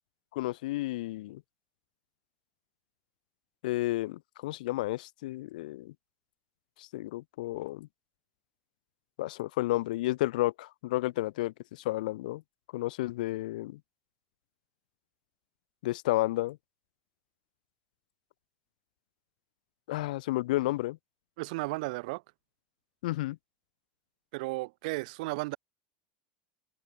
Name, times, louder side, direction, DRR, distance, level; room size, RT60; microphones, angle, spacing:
voice 1, 0.3-1.4 3.6-5.9 6.8-7.9 9.2-12.4 12.7-13.8 15.8-16.6 19.9-21.0 23.0-23.4, left 17 dB, 85° left, 7.5 m, -31 dB
voice 2, 21.4-22.2 24.3-25.6, right 24 dB, 70° right, 6.2 m, -34 dB
supercardioid pair, 155°, 4 cm